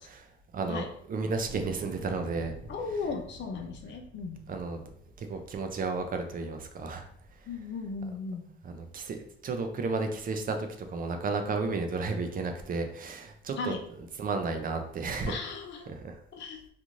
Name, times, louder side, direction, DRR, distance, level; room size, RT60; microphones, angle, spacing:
voice 1, 0.5-2.5 4.5-4.8 5.2-7.1 8.6-13.7 14.2-15.3 16.0-16.2, right 4 dB, 45° right, 6 dB, 0.5 m, -32 dB
sound 1, 1.4-6.7 7.2-8.0, right 2 dB, 70° right, 0.9 m, -48 dB
voice 2, 2.7-4.4 7.5-8.5 13.6-13.9 15.3-15.9 16.3-16.6, left 4 dB, 65° left, 4 dB, 0.6 m, -36 dB
2.5 x 2.4 x 3.0 m, 0.66 s
cardioid pair, 90°, 20 cm